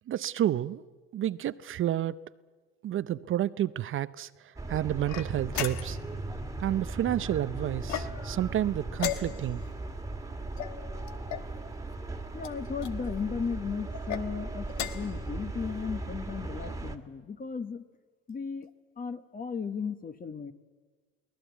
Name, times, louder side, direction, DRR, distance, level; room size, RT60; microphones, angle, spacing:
voice 1, 0.1-0.8 1.1-2.2 2.8-4.3 4.7-6.0 6.6-9.6, right 12 dB, 40° right, 0.6 m, -30 dB
sound 1, 4.6-17.0, right 2 dB, 10° right, 1.8 m, -38 dB
sound 2, 5.1-6.1 7.8-8.4 8.9-9.7 10.6-11.5 12.4-13.0 13.9-14.2 14.7-15.2, left 11 dB, 65° left, 1.3 m, -36 dB
voice 2, 12.3-14.7 14.9-17.8 18.3-18.7 19.0-20.5, left 6 dB, 25° left, 1.2 m, -35 dB
23.0 x 17.5 x 8.3 m
hypercardioid pair, 75°, 31 cm